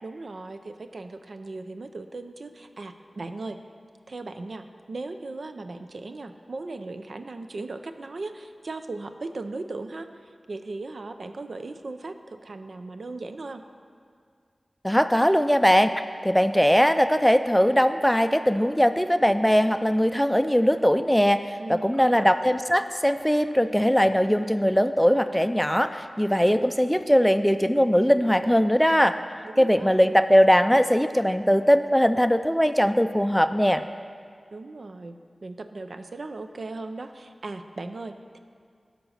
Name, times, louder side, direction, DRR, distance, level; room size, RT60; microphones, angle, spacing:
voice 1, 0.0-3.6 4.1-13.6 21.6-22.3 29.4-29.9 34.5-35.2 35.4-38.4, right 3 dB, 75° right, 8 dB, 0.5 m, -37 dB
voice 2, 14.8-15.9 16.2-29.2 29.6-33.8, equal, 5° left, 10 dB, 0.4 m, -20 dB
12.5 x 5.2 x 6.4 m, 2.2 s
wide cardioid pair, 50°, 0 cm